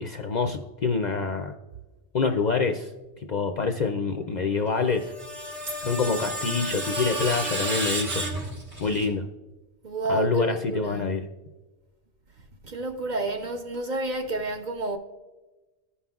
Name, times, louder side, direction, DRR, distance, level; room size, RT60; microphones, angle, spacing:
voice 1, 0.0-1.5 2.1-2.9 3.3-5.1 5.8-8.3 8.8-9.3 10.1-11.3, left 4 dB, 60° left, 0.5 m, -26 dB
Screech, 4.8-9.1, right 1 dB, 80° right, 1.9 m, -31 dB
voice 2, 9.8-11.1 12.6-15.0, right 2 dB, 50° right, 0.6 m, -30 dB
15.5 x 5.6 x 2.3 m
omnidirectional pair, 1.2 m